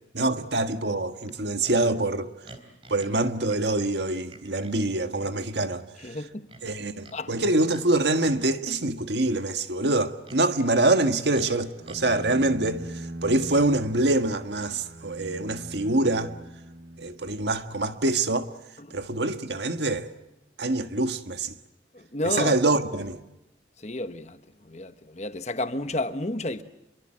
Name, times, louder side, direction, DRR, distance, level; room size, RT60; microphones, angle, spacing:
voice 1, 0.1-2.3 2.9-5.8 6.6-12.8 13.2-16.3 17.0-18.5 18.9-20.1 20.6-21.5 22.2-23.2, right 2 dB, 70° right, 1.6 m, -25 dB
Livestock farm animals working animals, 1.6-1.8 2.5-3.2 3.5-3.6 4.3-4.8 5.2-5.4 6.5-7.2 7.7-7.9 8.2-8.5 9.9-10.4 11.3-12.0, right 2 dB, 30° right, 3.6 m, -47 dB
voice 2, 6.0-6.5 7.1-7.3 18.9-19.0 22.1-22.5 23.8-24.4 24.7-26.6, left 2 dB, 35° left, 1.2 m, -31 dB
Bowed string instrument, 11.8-17.6, right 1 dB, 85° right, 1.5 m, -41 dB
27.5 x 23.5 x 7.5 m
head